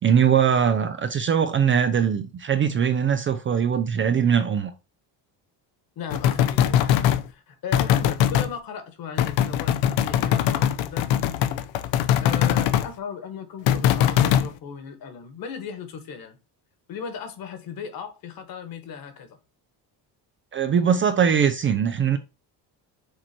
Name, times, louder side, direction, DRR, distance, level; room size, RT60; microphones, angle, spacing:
voice 1, 0.0-4.7 20.5-22.2, right 7 dB, 30° right, 0.4 m, -21 dB
voice 2, 6.0-11.6 12.2-16.4 16.9-19.4, left 6 dB, 50° left, 1.6 m, -37 dB
sound 1, 6.1-7.2 7.7-8.5 9.2-12.9 13.7-14.5, left 10 dB, 80° left, 0.8 m, -21 dB
6.6 x 4.4 x 4.4 m
cardioid pair, 170°, 44 cm